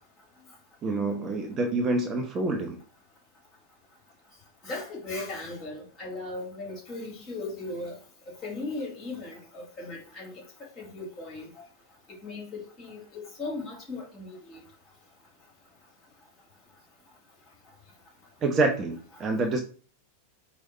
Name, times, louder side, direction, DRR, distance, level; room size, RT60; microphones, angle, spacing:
voice 1, 0.8-2.8 18.4-19.6, right 2 dB, 25° right, 4 dB, 0.7 m, -27 dB
voice 2, 4.6-7.9 8.4-10.3 10.8-11.5 12.2-14.6, left 2 dB, 30° left, -1 dB, 2.0 m, -37 dB
4.8 x 2.1 x 4.1 m, 0.40 s
figure-of-eight pair, 90°, 0 cm